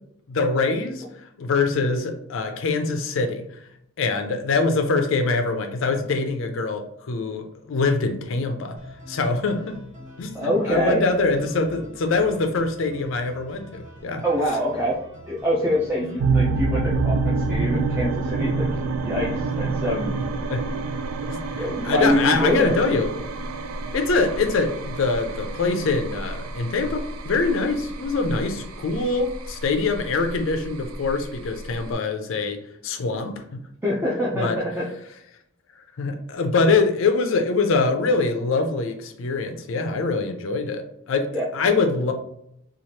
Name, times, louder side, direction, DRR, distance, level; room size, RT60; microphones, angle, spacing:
voice 1, 0.3-1.0 1.4-3.4 4.0-8.8 9.1-9.7 10.2-14.2 20.5-20.7 21.3-23.1 23.9-33.6 34.3-34.6 36.0-42.1, left 3 dB, 65° left, 5 dB, 0.4 m, -24 dB
sound 1, 8.8-16.3, equal, 35° right, 1.0 m, -44 dB
voice 2, 10.3-11.0 14.2-15.0 15.3-20.1 21.6-22.8 33.8-34.9 41.3-41.5, equal, 10° right, -6 dB, 0.4 m, -25 dB
sound 2, 16.2-31.9, right 3 dB, 90° right, 0.4 m, -28 dB
3.1 x 2.4 x 2.8 m, 0.75 s
head